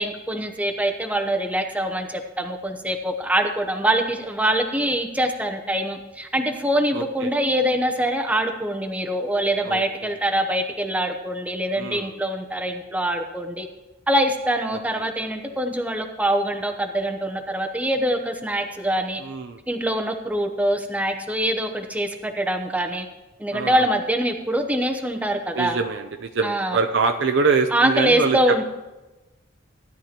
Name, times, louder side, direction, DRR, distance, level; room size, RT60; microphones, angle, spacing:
voice 1, 0.0-13.7 14.1-19.2 19.7-23.1 23.4-25.8 26.4-26.8 27.7-28.6, right 1 dB, 5° right, 5 dB, 0.8 m, -24 dB
voice 2, 6.9-7.3 9.6-10.1 11.8-12.2 15.0-15.3 19.2-19.6 23.5-23.9 25.5-28.6, right 4 dB, 65° right, 5 dB, 0.6 m, -25 dB
16.0 x 11.0 x 2.9 m, 1.1 s
head